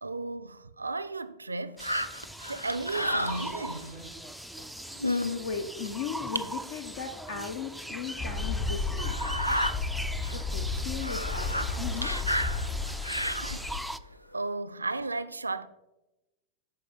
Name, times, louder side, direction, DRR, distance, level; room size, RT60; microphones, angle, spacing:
voice 1, 0.0-2.0 2.5-4.2 13.3-13.6 14.3-15.7, right 3 dB, 80° right, 0.4 m, -35 dB
sound 1, 1.8-3.9 4.6-4.7 5.0-5.4 5.9-6.0 6.4-6.5 7.5-7.6 8.0-8.1 9.0-9.7 10.2-10.4 10.7-13.7 14.3-14.4, equal, 90° left, 0.4 m, -31 dB
sound 2, 1.8-14.0, right 1 dB, ahead, 0.3 m, -40 dB
voice 2, 5.4-9.2 10.3-12.2, left 6 dB, 55° left, 0.7 m, -37 dB
sound 3, 8.2-13.8, left 4 dB, 30° left, 1.7 m, -33 dB
13.5 x 4.8 x 4.1 m
figure-of-eight pair, 90°, 0 cm